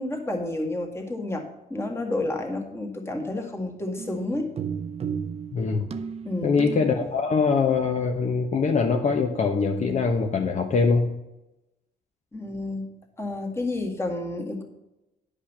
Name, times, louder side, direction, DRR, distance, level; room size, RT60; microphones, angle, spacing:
voice 1, 0.0-1.4 1.7-4.5 6.2-6.6 12.3-12.9 13.2-14.6, left 2 dB, 15° left, 1 dB, 1.8 m, -30 dB
sound 1, 4.0-7.1, right 6 dB, 40° right, 0.6 m, -34 dB
voice 2, 5.5-5.9 6.4-11.1, left 5 dB, 45° left, 3 dB, 0.9 m, -23 dB
10.5 x 5.4 x 6.6 m, 0.95 s
cardioid pair, 130°, 17 cm